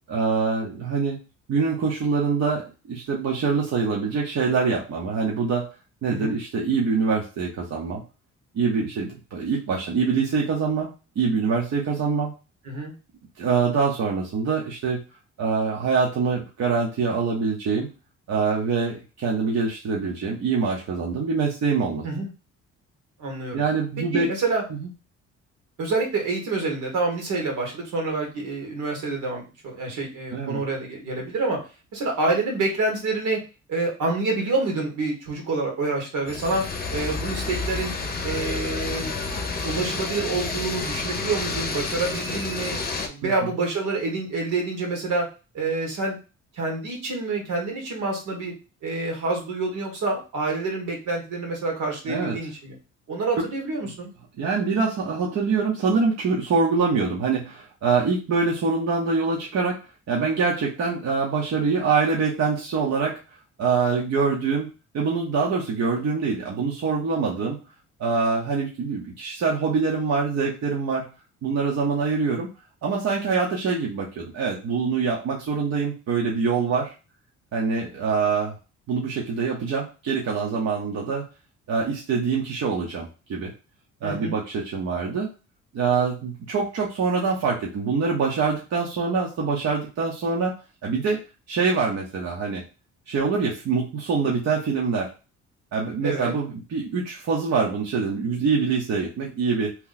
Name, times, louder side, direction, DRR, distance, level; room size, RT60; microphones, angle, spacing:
voice 1, 0.1-1.2 1.5-5.7 6.0-8.0 8.5-10.9 11.2-12.3 13.4-15.0 15.4-17.9 18.3-22.0 23.5-24.3 24.8-24.9 30.3-30.6 43.2-43.3 52.1-52.4 53.4-53.5 54.4-59.8 60.1-63.2 63.6-64.7 64.9-67.6 68.0-71.0 71.4-72.5 72.8-76.9 77.5-78.5 78.9-81.2 81.7-83.5 84.0-85.3 85.7-90.5 90.8-91.2 91.5-92.6 93.1-95.1 95.7-99.7, right 5 dB, 60° right, -3 dB, 0.9 m, -24 dB
voice 2, 23.2-23.6 24.1-24.6 25.8-31.6 31.9-33.4 33.7-36.7 36.9-37.9 38.2-39.1 39.6-42.8 43.1-45.3 45.5-46.2 46.5-48.5 48.8-52.8 53.1-54.1 84.0-84.4 96.0-96.3, right 3 dB, 80° right, 0 dB, 1.5 m, -27 dB
sound 1, 36.3-43.1, left 3 dB, 30° left, 0.7 m, -30 dB
3.0 x 2.3 x 3.8 m, 0.31 s
cardioid pair, 90°, 30 cm